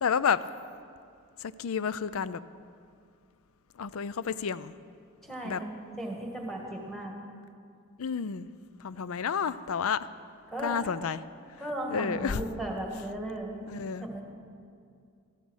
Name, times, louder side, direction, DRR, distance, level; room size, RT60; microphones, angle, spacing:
voice 1, 0.0-0.4 1.4-2.4 3.8-4.8 5.4-5.6 8.0-8.5 8.8-10.1 10.6-11.2 11.9-12.4 13.7-14.1, left 6 dB, 70° left, 16 dB, 0.4 m, -30 dB
voice 2, 5.2-7.2 10.5-10.8 11.6-13.7 14.0-14.2, right 1 dB, ahead, 0 dB, 1.7 m, -36 dB
14.0 x 12.0 x 6.3 m, 2.3 s
head